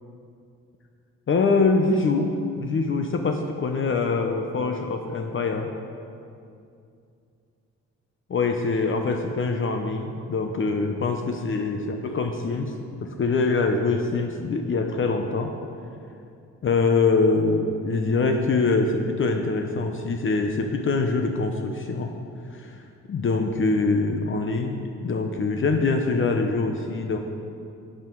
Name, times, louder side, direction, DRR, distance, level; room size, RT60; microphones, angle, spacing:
voice 1, 1.3-5.7 8.3-12.7 13.0-15.5 16.6-22.1 22.5-22.8 23.1-27.2, left 3 dB, 40° left, 4 dB, 0.8 m, -24 dB
9.2 x 9.1 x 4.6 m, 2.5 s
cardioid pair, 90°, 30 cm